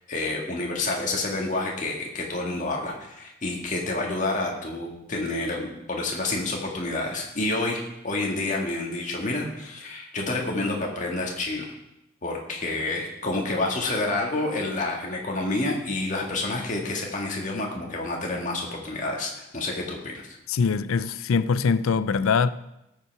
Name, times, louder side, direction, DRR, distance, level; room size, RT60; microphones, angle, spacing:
voice 1, 0.1-11.6 12.2-20.3, left 2 dB, 35° left, 1.7 m, -29 dB
voice 2, 20.5-22.5, left 5 dB, 80° left, 0.4 m, -23 dB
16.5 x 5.6 x 4.7 m
head